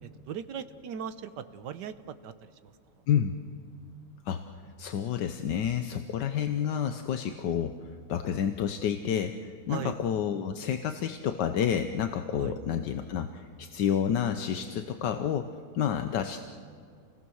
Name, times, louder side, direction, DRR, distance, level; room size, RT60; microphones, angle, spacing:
voice 1, 0.0-2.7 9.7-10.0 12.4-12.6, right 8 dB, 80° right, 11 dB, 1.5 m, -39 dB
voice 2, 4.8-15.5 15.7-16.4, left 8 dB, 80° left, 7 dB, 1.5 m, -29 dB
29.0 x 20.0 x 6.4 m, 2.2 s
omnidirectional pair, 1.8 m